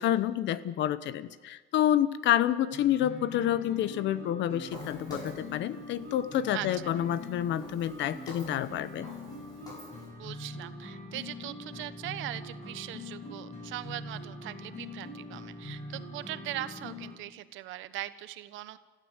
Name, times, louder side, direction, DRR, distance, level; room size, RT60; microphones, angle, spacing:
voice 1, 0.0-9.1, left 11 dB, 65° left, 16 dB, 1.0 m, -28 dB
sound 1, 2.7-17.1, left 2 dB, 35° left, 6.2 m, -43 dB
Walk footsteps, 4.7-10.1, right 1 dB, 20° left, 7.1 m, -49 dB
voice 2, 6.5-6.9 10.2-18.8, right 14 dB, 75° right, 13 dB, 1.1 m, -40 dB
26.0 x 15.0 x 8.2 m, 1.3 s
cardioid pair, 145°, 20 cm